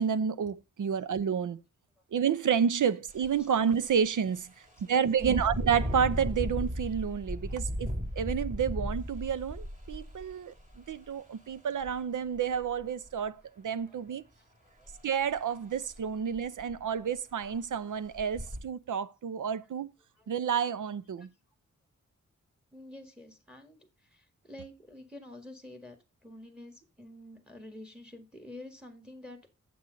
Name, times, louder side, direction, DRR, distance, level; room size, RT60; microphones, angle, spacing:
voice 1, 0.0-1.6 2.1-4.5 4.9-14.2 15.0-19.9 20.3-21.3, right 7 dB, 80° right, 0.6 m, -30 dB
Engine, 3.1-3.3 3.8-3.9 5.1-10.9 11.8-11.9 12.4-13.1 14.9-15.0 15.4-15.5 15.9-16.0 16.4-16.9 17.4-17.5 18.1-18.6, equal, 25° right, 2.6 m, -35 dB
voice 2, 4.9-5.5 13.9-14.0 14.4-14.5 14.8-14.9 20.2-20.3 21.2-21.3 22.7-26.0 26.2-29.4, left 1 dB, 5° right, 1.7 m, -48 dB
8.5 x 7.8 x 3.8 m
wide cardioid pair, 120°, 30 cm